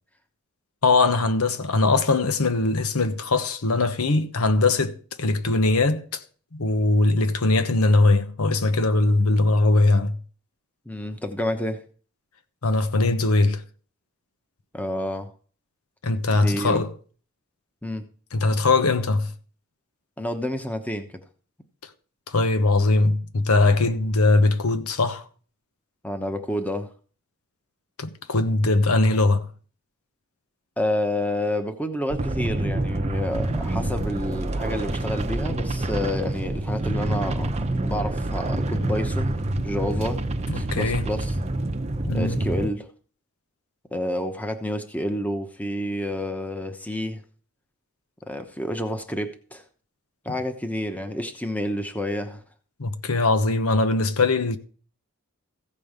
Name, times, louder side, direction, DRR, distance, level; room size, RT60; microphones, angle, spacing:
voice 1, 0.8-6.2 6.5-10.2 12.6-13.6 16.0-16.9 18.3-19.3 22.3-25.3 28.0-29.5 40.5-41.0 42.0-42.4 52.8-54.6, left 2 dB, 85° left, 1.0 m, -21 dB
voice 2, 10.9-11.8 14.7-15.3 16.3-16.8 17.8-18.0 20.2-21.1 26.0-26.9 30.8-37.5 37.8-39.4 39.6-40.2 40.5-41.3 42.1-42.9 43.9-47.2 48.2-49.6 50.2-52.4, left 1 dB, 5° left, 1.0 m, -29 dB
sound 1, 32.1-42.7, right 1 dB, 30° right, 0.7 m, -27 dB
15.0 x 5.4 x 6.6 m
head